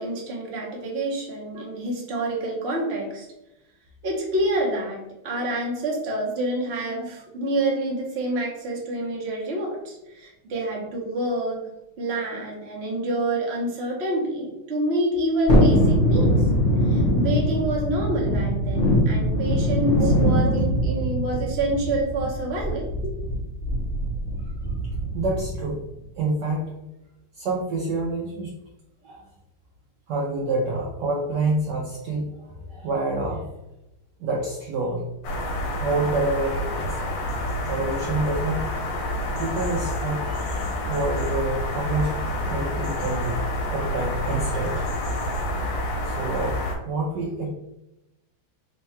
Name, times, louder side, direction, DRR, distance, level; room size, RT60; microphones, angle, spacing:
voice 1, 0.0-3.3 4.0-11.7 12.0-16.4 16.8-22.9, right 1 dB, 40° right, -3 dB, 1.0 m, -27 dB
Thunderstorm, 15.5-25.7 26.0-26.1, equal, 50° left, 0.6 m, -22 dB
voice 2, 25.1-25.8 26.2-26.7 27.3-28.5 29.0-29.2 30.1-33.5 34.2-35.4 35.8-37.0 37.7-38.7 39.4-40.3 40.9-42.2 42.5-43.4 43.7-44.9 46.0-46.6 46.9-47.5, right 2 dB, 70° right, -3 dB, 1.1 m, -27 dB
sound 1, 35.2-46.8, left 1 dB, 70° left, 1.4 m, -28 dB
3.6 x 2.3 x 4.2 m, 0.92 s
omnidirectional pair, 2.3 m